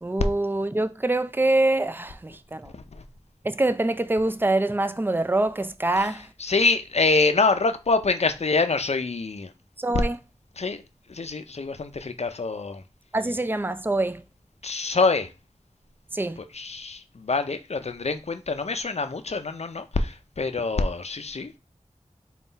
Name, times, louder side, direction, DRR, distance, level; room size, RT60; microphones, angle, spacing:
voice 1, 0.0-2.7 3.4-6.2 9.8-10.2 13.1-14.2 16.1-16.4, right 2 dB, 15° right, 0.3 m, -25 dB
voice 2, 2.7-3.0 6.0-6.1 6.4-9.5 10.6-10.8 11.1-12.8 14.6-15.3 16.5-21.6, left 3 dB, 60° left, 0.5 m, -25 dB
3.7 x 2.3 x 4.0 m
wide cardioid pair, 50°, 12 cm